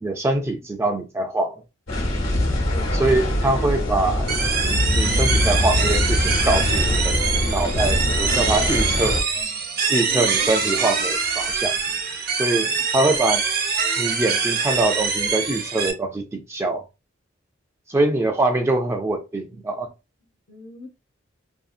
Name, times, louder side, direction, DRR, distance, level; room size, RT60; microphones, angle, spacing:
voice 1, 0.0-1.6 2.9-4.3 4.9-7.2 7.5-9.2 9.9-11.8 12.3-12.6 12.9-13.4 14.0-16.9 17.9-19.9, right 2 dB, 15° right, 0.3 m, -23 dB
sound 1, 1.9-9.2, left 1 dB, 85° left, 1.1 m, -23 dB
voice 2, 2.7-3.0 10.1-10.4 12.5-12.8 20.5-20.9, left 1 dB, 45° left, 0.6 m, -39 dB
sound 2, 4.3-15.9, right 5 dB, 50° right, 0.6 m, -24 dB
2.7 x 2.7 x 2.4 m
head